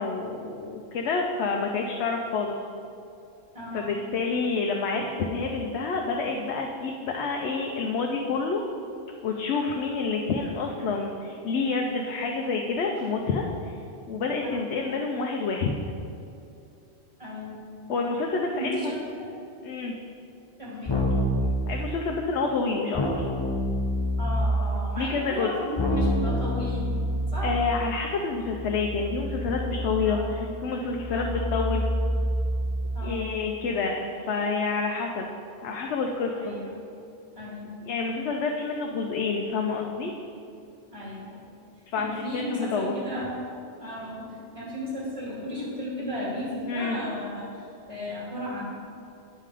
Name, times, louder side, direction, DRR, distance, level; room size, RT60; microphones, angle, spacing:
voice 1, 0.0-2.6 3.7-8.7 9.2-13.7 14.1-15.7 17.9-18.9 19.6-19.9 21.7-23.2 25.0-25.5 27.4-31.8 33.0-35.3 35.6-36.5 37.8-40.1 41.9-43.0 46.7-47.0, left 4 dB, 75° left, 1 dB, 0.9 m, -28 dB
voice 2, 3.5-4.0 14.4-14.8 17.2-17.6 18.6-19.3 20.6-21.0 24.2-26.9 27.3-27.5 30.0-30.4 31.1-31.5 32.9-33.4 36.3-36.8 37.4-37.8 40.9-41.4 41.9-43.4 43.8-48.7, left 1 dB, 30° right, -6 dB, 2.3 m, -35 dB
Keyboard (musical), 20.9-21.5 22.9-24.5 25.8-32.8, equal, 30° left, 0.6 m, -28 dB
9.1 x 5.7 x 4.9 m, 2.6 s
omnidirectional pair, 1.1 m